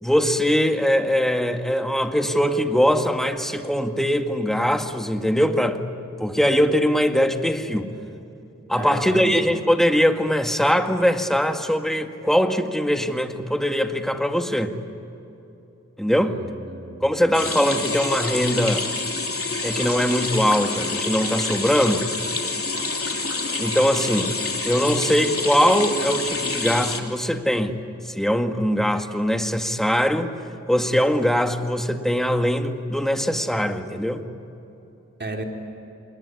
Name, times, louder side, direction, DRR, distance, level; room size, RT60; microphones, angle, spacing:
voice 1, 0.0-5.8 6.2-7.9 8.7-14.7 16.0-16.4 17.0-18.9 19.6-22.0 23.6-24.4 24.6-27.8 28.2-30.3 30.7-34.2, equal, ahead, 5 dB, 1.9 m, -21 dB
voice 2, 8.7-9.4 16.1-17.1 35.2-35.4, right 2 dB, 40° right, 1 dB, 4.3 m, -34 dB
sound 1, 17.3-27.0, left 3 dB, 50° left, 3.1 m, -27 dB
27.5 x 21.5 x 9.9 m, 3.0 s
wide cardioid pair, 65°, 29 cm